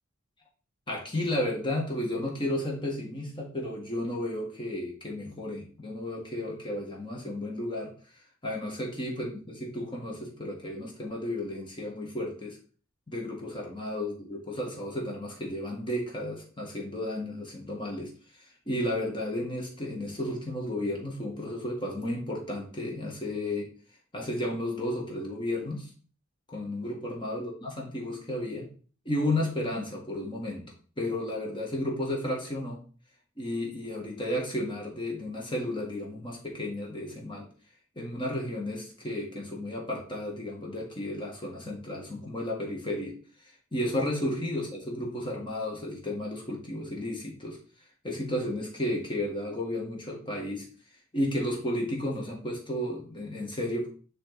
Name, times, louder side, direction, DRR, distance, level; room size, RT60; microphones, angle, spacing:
voice 1, 0.9-7.9 8.4-12.6 13.1-18.1 18.7-23.7 24.1-25.9 26.5-28.7 29.1-32.8 33.4-37.5 38.0-43.2 43.7-47.6 48.0-50.7 51.1-53.9, left 1 dB, 25° left, -2 dB, 1.8 m, -33 dB
9.9 x 3.3 x 4.0 m, 0.40 s
head